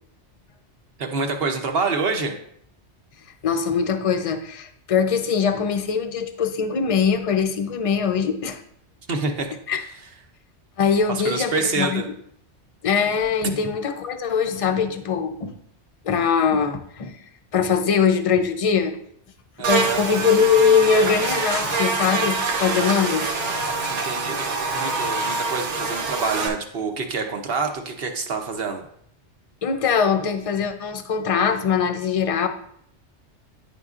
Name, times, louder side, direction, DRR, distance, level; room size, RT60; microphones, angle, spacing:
voice 1, 1.0-2.4 9.1-9.9 11.1-12.1 19.6-20.0 23.9-28.9, right 4 dB, 60° right, 4 dB, 1.0 m, -27 dB
voice 2, 3.4-8.6 9.7-9.8 10.8-12.0 12.8-15.5 16.0-17.2 17.5-19.0 19.6-23.7 29.6-32.5, left 6 dB, 40° left, 7 dB, 0.5 m, -22 dB
Buzz, 19.6-26.5, right 4 dB, 80° right, 1.2 m, -25 dB
10.0 x 5.2 x 2.4 m, 0.68 s
omnidirectional pair, 1.2 m